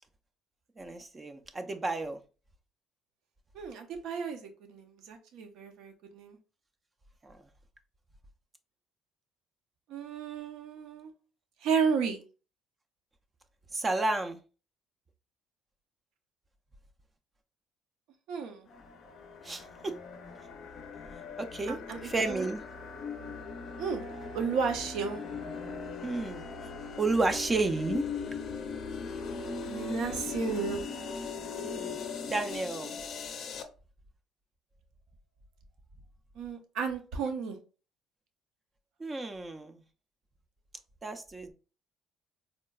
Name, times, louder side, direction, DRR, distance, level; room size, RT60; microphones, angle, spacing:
voice 1, 0.8-2.2 7.2-7.4 13.7-14.4 19.4-19.9 21.4-22.6 26.0-26.4 27.0-28.0 31.6-33.0 39.0-39.8 41.0-41.5, right 3 dB, 25° right, 0.3 m, -32 dB
voice 2, 3.5-6.4 9.9-11.1 11.6-12.2 18.3-18.7 21.7-22.5 23.8-24.0 24.3-25.3 29.7-30.9 36.4-37.6, right 5 dB, 75° right, 0.6 m, -33 dB
sound 1, 18.7-33.6, left 5 dB, 55° left, 0.4 m, -39 dB
3.7 x 2.1 x 2.3 m
cardioid pair, 110°, 0 cm